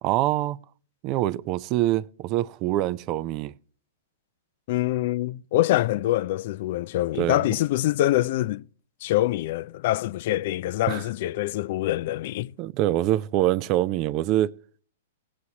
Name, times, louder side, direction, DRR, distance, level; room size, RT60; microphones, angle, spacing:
voice 1, 0.0-0.6 1.0-3.5 7.2-7.4 10.9-11.0 12.6-14.5, right 14 dB, 40° right, 0.4 m, -24 dB
voice 2, 4.7-8.6 9.0-12.5, left 15 dB, 55° left, 0.4 m, -25 dB
18.0 x 8.2 x 2.8 m
hypercardioid pair, 110°, 0 cm